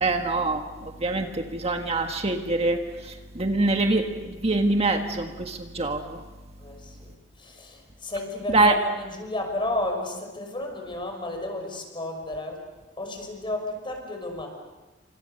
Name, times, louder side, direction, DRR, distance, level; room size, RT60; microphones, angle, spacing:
voice 1, 0.0-6.2 8.5-8.8, right 2 dB, 35° right, 4 dB, 1.6 m, -25 dB
voice 2, 6.6-12.7 13.0-14.5, left 1 dB, 25° left, 4 dB, 6.0 m, -32 dB
29.0 x 26.5 x 6.7 m, 1.2 s
head